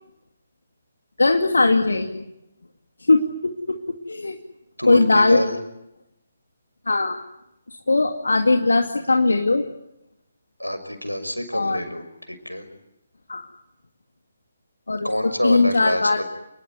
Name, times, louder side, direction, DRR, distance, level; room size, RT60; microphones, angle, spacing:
voice 1, 1.2-2.2 3.0-4.4 4.9-5.4 6.9-7.2 7.9-9.7 11.5-11.8 13.3-13.5 14.9-15.1 15.4-16.2, left 3 dB, 70° left, 4 dB, 2.3 m, -19 dB
voice 2, 4.8-5.6 10.6-12.6 15.0-16.2, equal, 90° left, 9 dB, 6.1 m, -27 dB
29.5 x 20.0 x 9.8 m, 0.83 s
figure-of-eight pair, 140°, 0 cm